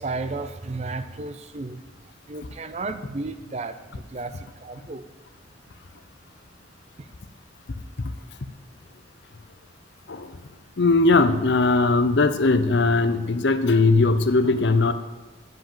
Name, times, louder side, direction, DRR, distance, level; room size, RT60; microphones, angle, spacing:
voice 1, 0.0-1.8 2.3-5.1 7.0-7.1, right 3 dB, 35° right, 11 dB, 0.5 m, -33 dB
voice 2, 10.8-14.9, left 3 dB, 60° left, 11 dB, 0.6 m, -19 dB
7.9 x 7.6 x 7.2 m, 1.2 s
head